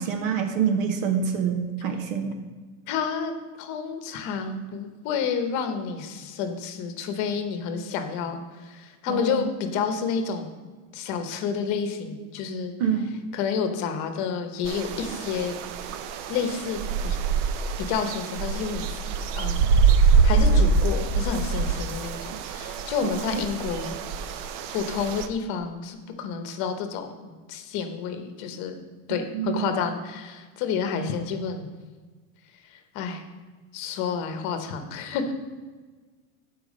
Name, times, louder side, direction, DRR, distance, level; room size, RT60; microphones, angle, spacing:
voice 1, 0.0-2.3 9.1-9.5 12.8-13.1 23.0-23.4 29.3-29.6, right 7 dB, 85° right, 5 dB, 1.1 m, -26 dB
voice 2, 2.9-10.6 10.9-12.7 13.3-15.5 16.3-17.2 17.8-19.0 19.4-19.7 20.2-24.0 24.7-28.8 29.1-31.7 32.6-33.2 33.7-35.3, left 6 dB, 50° left, 7 dB, 0.9 m, -30 dB
sound 1, 14.6-25.3, right 5 dB, 65° right, 0.6 m, -24 dB
6.8 x 4.6 x 5.2 m, 1.4 s
supercardioid pair, 150°, 38 cm